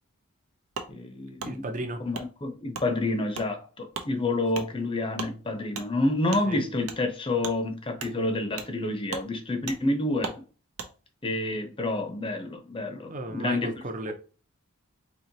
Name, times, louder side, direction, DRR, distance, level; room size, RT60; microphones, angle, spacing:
Wood, 0.7-0.9 1.4-1.5 2.1-2.3 2.7-2.9 3.3-3.5 3.9-4.1 4.5-4.7 5.1-5.3 5.7-5.9 6.3-6.4 6.8-7.0 7.4-7.6 8.0-8.1 8.6-8.7 9.1-9.3 9.7-9.8 10.2-10.4 10.8-10.9, right 5 dB, 75° right, 0.7 m, -36 dB
voice 1, 0.9-1.7 2.0-10.4 11.2-13.7, left 2 dB, 25° left, 0.6 m, -29 dB
voice 2, 1.4-2.0 6.4-6.6 13.1-14.1, right 1 dB, 35° right, 0.6 m, -34 dB
4.5 x 3.0 x 2.7 m
head